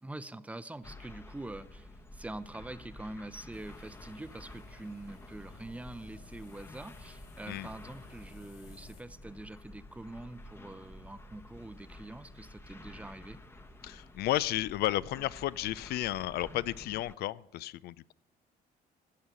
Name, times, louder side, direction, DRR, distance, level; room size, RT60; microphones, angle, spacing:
voice 1, 0.0-13.4, right 2 dB, 10° right, 13 dB, 0.7 m, -45 dB
sound 1, 0.8-17.2, left 1 dB, 15° left, 1.0 m, -51 dB
sound 2, 3.5-9.0, left 4 dB, 40° left, 2.5 m, -57 dB
voice 2, 13.8-18.1, left 14 dB, 70° left, 19 dB, 0.4 m, -33 dB
15.5 x 5.6 x 9.5 m, 0.87 s
cardioid pair, 110°, 17 cm